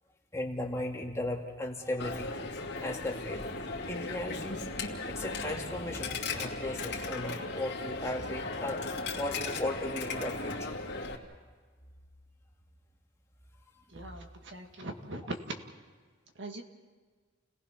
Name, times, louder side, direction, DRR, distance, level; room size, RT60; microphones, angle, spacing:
voice 1, 0.3-2.4 2.8-3.6 3.8-4.6 5.0-10.8, left 1 dB, 15° left, 0 dB, 2.3 m, -36 dB
Coin (dropping), 2.0-11.2, left 3 dB, 55° left, 2.6 m, -37 dB
voice 2, 13.9-15.5 16.4-16.6, right 1 dB, 60° right, 4 dB, 2.0 m, -40 dB
30.0 x 18.5 x 5.9 m, 1.5 s
head